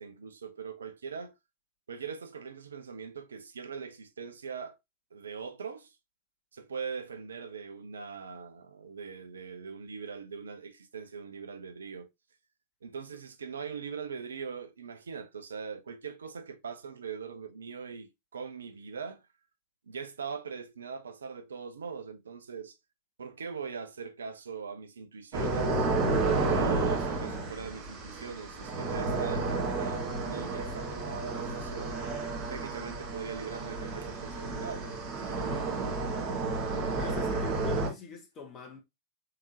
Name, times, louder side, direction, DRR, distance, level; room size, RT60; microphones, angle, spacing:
voice 1, 0.0-1.3 1.9-4.8 5.1-5.9 6.5-12.1 12.8-19.2 19.9-22.8 23.2-25.9 26.4-32.0 32.5-36.4, right 6 dB, 70° right, 0.7 m, -41 dB
sound 1, 25.3-37.9, right 3 dB, 40° right, 1.9 m, -31 dB
voice 2, 37.0-38.8, left 6 dB, 35° left, 2.1 m, -44 dB
4.8 x 3.6 x 2.9 m
figure-of-eight pair, 90°, 0 cm